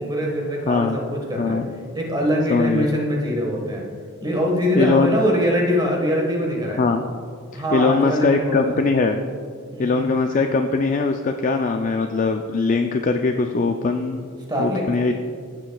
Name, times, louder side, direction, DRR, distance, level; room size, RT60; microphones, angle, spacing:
voice 1, 0.0-1.6 1.9-3.8 4.2-6.8 7.5-8.8 9.7-10.1 14.5-14.9, equal, 20° right, -1 dB, 1.4 m, -23 dB
voice 2, 0.7-1.0 1.4-1.7 2.5-2.8 4.8-5.2 6.8-7.0 7.5-9.2 9.8-14.3 14.6-15.1, left 3 dB, 35° left, 5 dB, 0.3 m, -21 dB
15.0 x 6.7 x 2.3 m, 2.1 s
head